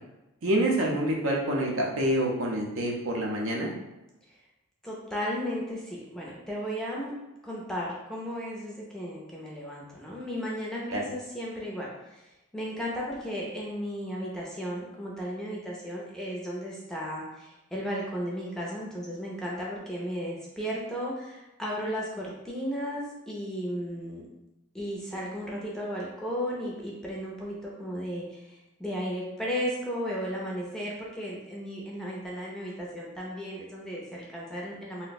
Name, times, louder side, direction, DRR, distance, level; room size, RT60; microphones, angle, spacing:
voice 1, 0.4-3.7 10.9-11.0, right 1 dB, 65° right, -1 dB, 0.6 m, -27 dB
voice 2, 4.8-7.1 7.4-24.2 24.7-35.1, equal, 5° left, -4 dB, 0.5 m, -35 dB
2.6 x 2.1 x 4.0 m, 0.97 s
head